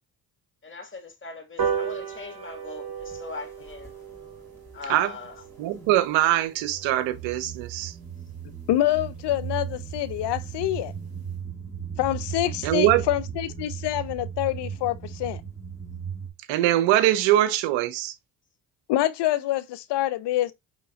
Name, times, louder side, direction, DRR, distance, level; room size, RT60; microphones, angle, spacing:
voice 1, 0.6-3.9 4.7-5.4, left 4 dB, 25° left, 1.9 m, -40 dB
sound 1, 1.6-8.3 8.8-8.9 9.2-9.3 9.6-9.7 9.9-10.0 10.3-10.6 11.0-11.1, right 7 dB, 55° right, 2.5 m, -35 dB
sound 2, 3.0-3.2 3.7-4.8 5.2-6.1 6.6-16.3, right 7 dB, 5° left, 2.0 m, -37 dB
voice 2, 5.6-7.9 12.6-13.0 16.5-18.1, right 13 dB, 85° right, 0.9 m, -22 dB
voice 3, 8.7-10.9 12.0-15.4 18.9-20.5, left 14 dB, 65° left, 0.6 m, -26 dB
5.7 x 3.6 x 2.5 m
supercardioid pair, 55°, 45 cm